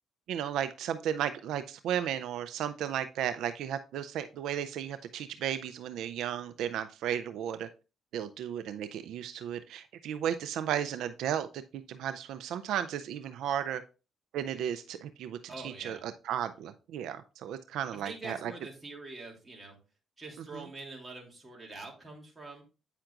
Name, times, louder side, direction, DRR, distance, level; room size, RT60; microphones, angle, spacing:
voice 1, 0.3-7.7 8.1-11.6 11.9-13.8 14.3-18.5 20.5-20.6, right 9 dB, 85° right, 10 dB, 0.4 m, -34 dB
voice 2, 15.5-16.0 18.0-19.8 20.2-22.6, right 3 dB, 25° right, 0 dB, 2.9 m, -44 dB
9.0 x 5.7 x 2.4 m, 0.32 s
cardioid pair, 90°, 0 cm